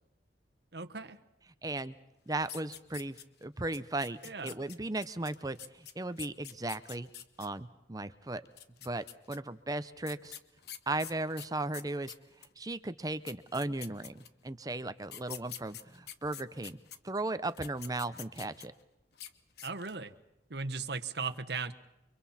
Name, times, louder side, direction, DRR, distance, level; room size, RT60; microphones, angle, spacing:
voice 1, 0.7-1.2 4.2-4.6 19.6-20.1 20.5-21.7, right 4 dB, 65° right, 7 dB, 1.3 m, -37 dB
voice 2, 1.6-2.0 2.3-7.1 7.4-8.4 8.8-10.4 10.9-12.1 12.6-16.8 17.0-18.7, right 2 dB, 20° right, 12 dB, 0.8 m, -36 dB
sound 1, 2.4-3.4 3.7-7.5 8.5-9.4 10.0-12.5 13.0-13.1 13.3-14.5 15.0-17.0 17.5-18.8 19.1-19.3 19.6-20.0, left 10 dB, 60° left, 1.2 m, -46 dB
29.5 x 25.0 x 4.3 m, 0.93 s
head